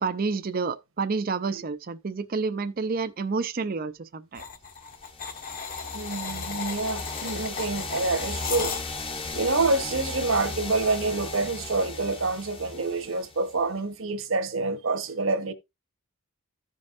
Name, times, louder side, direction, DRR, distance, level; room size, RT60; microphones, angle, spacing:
voice 1, 0.0-4.4, right 4 dB, 40° right, 0.5 m, -29 dB
sound 1, 4.3-9.2, left 5 dB, 40° left, 1.2 m, -35 dB
sound 2, 4.9-13.7, left 3 dB, 25° left, 0.9 m, -37 dB
voice 2, 5.9-8.7 9.3-15.5, right 3 dB, 65° right, 1.1 m, -27 dB
15.0 x 5.3 x 2.5 m
head